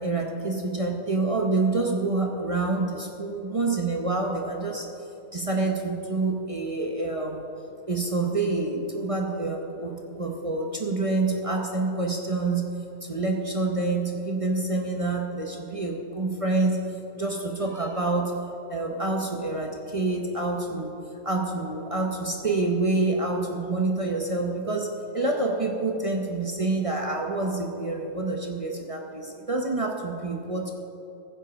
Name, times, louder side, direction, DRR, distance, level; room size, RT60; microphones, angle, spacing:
voice 1, 0.0-4.9 5.3-7.5 7.9-12.7 13.0-18.3 18.7-20.9 21.2-24.9 25.1-30.7, right 3 dB, 35° right, 1 dB, 0.6 m, -27 dB
15.0 x 7.5 x 5.0 m, 2.8 s
omnidirectional pair, 1.8 m